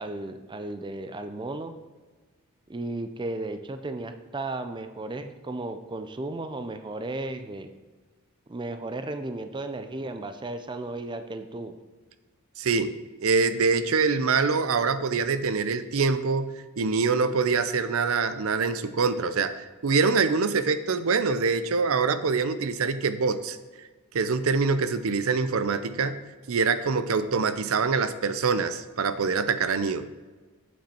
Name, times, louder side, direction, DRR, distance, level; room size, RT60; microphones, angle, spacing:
voice 1, 0.0-1.8 2.7-7.7 8.5-11.8, right 2 dB, 20° right, 8 dB, 0.5 m, -34 dB
voice 2, 12.6-12.9 13.2-16.5 16.8-23.6 24.1-26.2 26.5-30.1, right 4 dB, 70° right, 12 dB, 0.5 m, -24 dB
8.7 x 7.8 x 4.3 m, 1.3 s
head